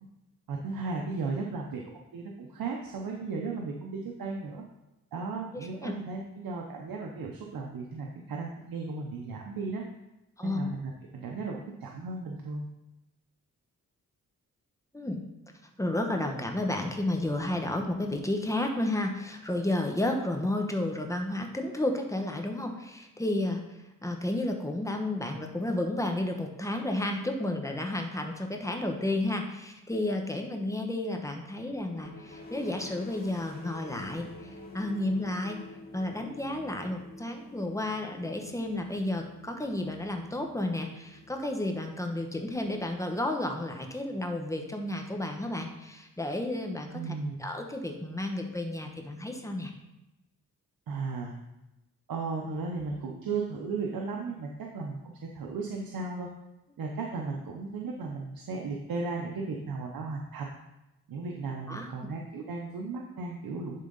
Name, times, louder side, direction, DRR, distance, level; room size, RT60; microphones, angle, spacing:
voice 1, 0.5-4.6 5.1-9.8 10.4-12.7 46.9-47.5 50.9-51.3 52.1-56.3 56.8-60.5 61.1-63.8, right 4 dB, 80° right, 0 dB, 0.9 m, -35 dB
voice 2, 5.5-5.9 10.4-10.6 14.9-15.2 15.8-23.6 24.0-35.6 35.9-47.1 47.4-49.7 61.7-61.9, left 1 dB, 10° left, 3 dB, 1.0 m, -32 dB
sound 1, 31.7-43.3, left 2 dB, 25° left, 1.6 m, -49 dB
10.5 x 3.7 x 4.0 m, 0.96 s
cardioid pair, 80°, 35 cm